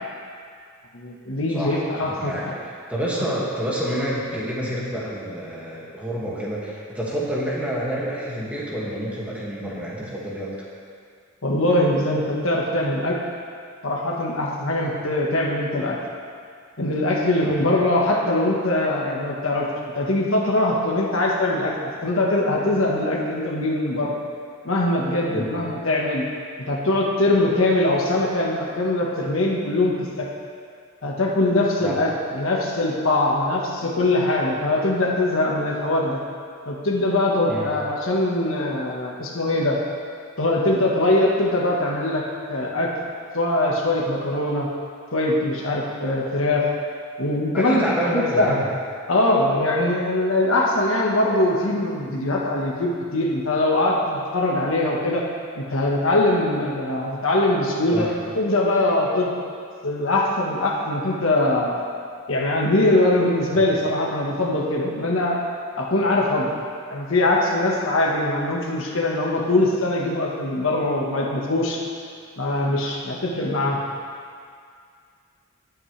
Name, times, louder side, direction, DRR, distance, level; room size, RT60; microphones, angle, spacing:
voice 1, 0.9-2.5 11.4-13.2 13.8-16.0 16.8-19.7 19.9-24.1 24.6-26.2 26.7-30.3 31.0-36.2 36.6-39.8 40.4-42.9 43.3-44.7 45.1-46.6 47.2-48.5 49.1-55.2 55.5-58.1 58.3-59.3 59.8-61.8 62.3-65.4 65.8-66.6 66.9-71.8 72.4-73.8, left 1 dB, 70° left, -2 dB, 1.5 m, -22 dB
voice 2, 1.5-1.8 2.2-10.7 17.4-17.6 25.3-25.5 31.8-32.0 37.5-37.7 47.5-48.7 57.9-58.1 63.5-63.6, equal, 5° right, -7 dB, 2.2 m, -28 dB
18.5 x 8.6 x 3.4 m, 2.2 s
head